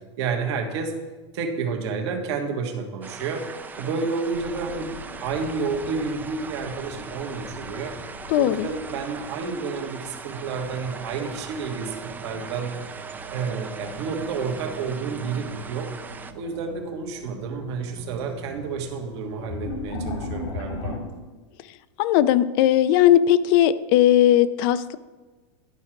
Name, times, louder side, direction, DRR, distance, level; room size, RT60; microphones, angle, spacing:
voice 1, 0.2-0.9 1.3-3.5 3.8-7.9 8.3-12.7 13.3-15.9 16.3-21.0, right 5 dB, 65° right, 4 dB, 1.5 m, -30 dB
sound 1, 3.0-16.3, right 5 dB, 10° right, 0.4 m, -40 dB
sound 2, 4.3-11.2 11.4-12.3 14.0-14.3 14.9-15.0 16.0-16.1 16.4-16.9 17.3-21.0, left 2 dB, 80° left, 2.3 m, -38 dB
voice 2, 8.3-8.7 22.0-25.0, left 12 dB, 50° left, 15 dB, 0.5 m, -18 dB
sound 3, 10.3-21.2, right 4 dB, 45° right, 1.1 m, -43 dB
11.0 x 4.9 x 6.0 m, 1.2 s
supercardioid pair, 145°, 15 cm